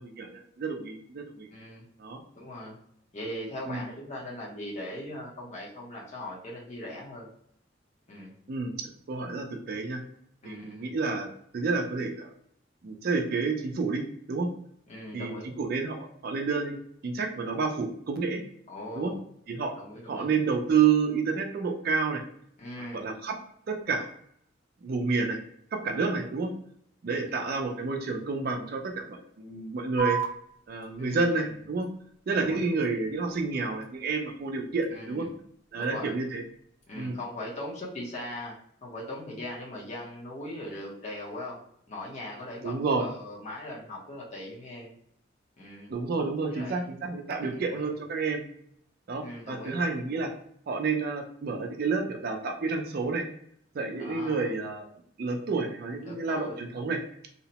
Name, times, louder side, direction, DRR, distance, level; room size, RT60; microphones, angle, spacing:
voice 1, 0.0-1.5 2.0-2.2 3.7-3.8 8.5-10.0 10.4-12.3 12.8-14.5 15.1-15.3 15.6-16.8 17.0-18.4 19.0-19.1 19.5-19.7 20.1-22.2 22.9-23.4 23.7-24.1 24.8-25.4 25.7-26.5 27.0-30.2 30.7-31.9 32.3-35.3 35.7-36.4 37.0-37.2 42.6-43.1 45.9-48.4 49.1-50.3 50.7-53.2 53.7-54.9 55.2-57.0, right 4 dB, 50° right, 3 dB, 0.4 m, -29 dB
voice 2, 1.5-1.9 2.3-2.8 3.1-7.3 8.1-8.3 10.4-10.9 14.9-15.5 18.7-19.2 19.8-20.3 22.6-23.0 25.9-26.2 27.3-27.4 31.0-31.3 32.3-32.6 34.9-35.3 35.7-36.1 36.9-38.5 38.8-41.6 41.9-44.9 45.6-45.9 46.5-46.8 47.4-47.9 49.2-49.9 54.0-54.5 56.0-56.6, left 1 dB, 35° left, -4 dB, 0.7 m, -40 dB
sound 1, 30.0-37.0, right 7 dB, 75° left, 0.6 m, -40 dB
2.8 x 2.0 x 2.8 m, 0.69 s
head